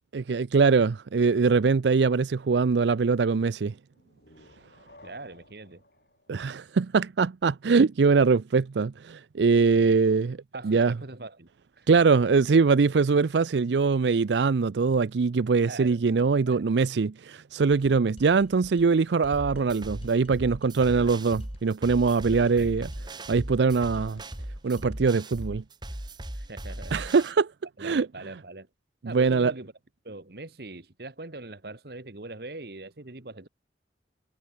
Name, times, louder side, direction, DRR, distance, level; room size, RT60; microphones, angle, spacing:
voice 1, 0.1-3.7 6.3-10.4 10.6-10.9 11.9-22.9 23.3-24.2 24.6-25.6 26.9-27.5 27.8-28.1 29.0-29.5, right 4 dB, 80° right, 0.5 m, -22 dB
sound 1, 3.9-7.5, left 2 dB, 60° left, 5.5 m, -57 dB
voice 2, 5.0-5.8 9.7-10.0 10.5-11.5 11.8-11.9 15.6-16.0 16.4-16.6 20.8-21.2 22.6-22.8 26.3-27.1 27.8-28.7 29.0-29.7 30.0-33.5, right 2 dB, 60° right, 1.5 m, -42 dB
sound 2, 17.7-25.1, left 1 dB, 35° left, 2.3 m, -51 dB
sound 3, 19.3-27.3, right 1 dB, 25° right, 1.9 m, -38 dB
head